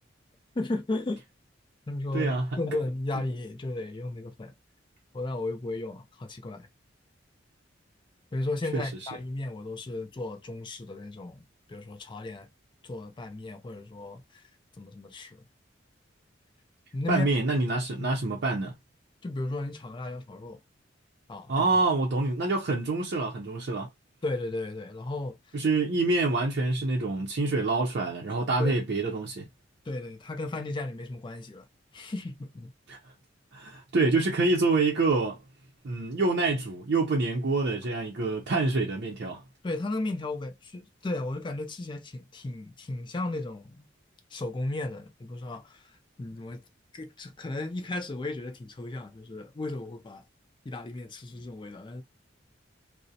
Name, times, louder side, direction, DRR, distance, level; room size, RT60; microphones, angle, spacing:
voice 1, 0.6-1.2 1.9-4.5 5.1-6.7 8.3-11.4 11.7-12.5 12.8-14.4 14.8-15.4 16.9-17.3 18.0-18.1 19.2-20.6 21.3-21.7 24.2-25.4 28.6-28.8 29.9-31.7 31.9-32.7 39.6-43.9 44.3-45.9 46.2-46.6 46.9-50.2 50.6-52.0, left 2 dB, 25° left, 0.4 m, -34 dB
voice 2, 2.1-2.5 8.7-8.8 17.1-18.7 21.5-23.9 25.5-29.5 32.9-33.0 33.5-35.4 35.8-39.4, right 3 dB, 60° right, 0.5 m, -26 dB
2.3 x 2.0 x 2.7 m
head